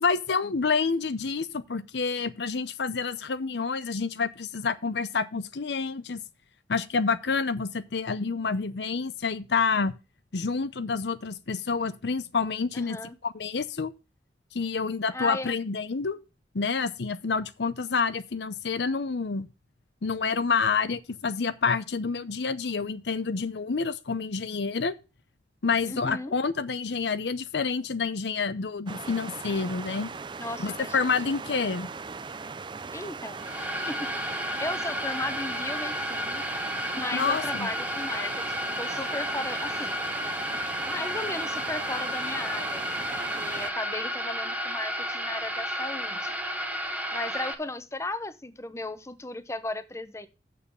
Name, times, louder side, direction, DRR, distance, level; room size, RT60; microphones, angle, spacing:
voice 1, 0.0-6.2 6.7-9.9 10.3-13.9 14.5-16.2 16.5-19.5 20.0-24.9 25.6-30.1 30.6-31.9 37.1-37.7, left 4 dB, 70° left, 0.7 m, -28 dB
voice 2, 12.7-13.2 15.1-15.6 25.9-26.3 30.4-31.0 32.9-33.4 33.9-36.4 36.9-40.0 40.8-43.0 43.4-46.4 47.1-50.3, left 2 dB, 15° left, 0.7 m, -36 dB
sound 1, 28.9-43.7, right 4 dB, 25° right, 0.4 m, -39 dB
sound 2, 33.4-47.5, equal, 10° right, 1.0 m, -32 dB
7.2 x 6.7 x 6.8 m
head